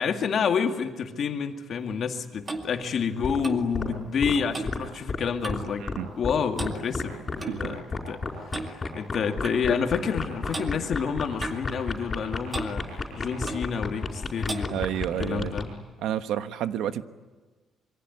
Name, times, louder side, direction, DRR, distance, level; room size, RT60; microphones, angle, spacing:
voice 1, 0.0-5.9 6.2-8.2 8.4-14.8 15.2-15.7, left 6 dB, 45° left, 5 dB, 2.2 m, -29 dB
Clock, 1.9-5.8 6.0-6.3 6.5-7.6 8.5-8.7 9.4-9.6 10.5-10.7 11.4-12.2 12.5-12.7 13.4-13.7 14.5-14.7, right 2 dB, 15° right, 2.2 m, -37 dB
sound 1, 3.2-3.4 3.8-3.9 4.2-4.3 4.7-4.8 5.1-5.2 5.5-5.6 5.9-6.0 6.2-6.3 6.6-7.0 7.3-7.4 7.6-15.6, left 4 dB, 20° left, 4.9 m, -29 dB
voice 2, 14.7-15.5 16.0-17.0, right 10 dB, 80° right, 10 dB, 1.3 m, -30 dB
27.0 x 23.5 x 9.5 m, 1.3 s
cardioid pair, 165°, 0 cm